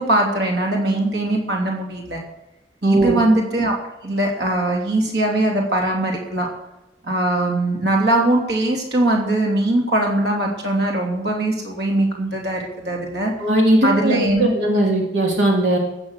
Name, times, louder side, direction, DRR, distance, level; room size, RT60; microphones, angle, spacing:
voice 1, 0.0-2.2 2.8-3.7 4.0-6.5 7.0-13.3 13.8-14.5, right 1 dB, 65° right, 0 dB, 3.1 m, -21 dB
voice 2, 2.8-3.2 13.4-15.8, right 1 dB, 85° right, -1 dB, 2.7 m, -18 dB
15.0 x 8.7 x 6.4 m, 0.96 s
head